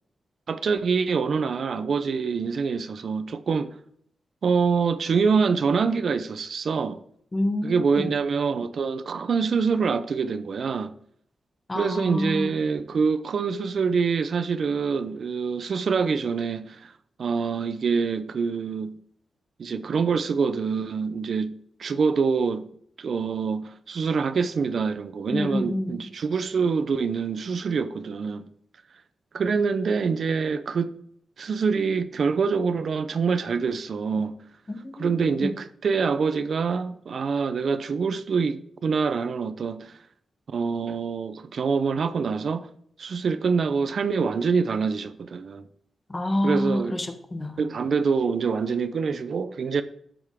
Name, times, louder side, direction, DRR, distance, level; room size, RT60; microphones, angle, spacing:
voice 1, 0.5-3.8 4.4-7.0 7.6-10.9 11.7-16.9 17.2-19.0 19.6-22.7 23.0-28.5 29.3-30.9 31.4-34.4 34.9-39.9 40.5-42.7 43.0-45.7 46.4-47.0 47.6-49.8, right 5 dB, 60° right, 0.7 m, -25 dB
voice 2, 7.3-8.1 11.7-12.5 25.3-26.1 34.7-35.5 46.1-47.7, left 1 dB, 20° left, 1.1 m, -28 dB
12.5 x 7.1 x 3.6 m
wide cardioid pair, 110°, 0 cm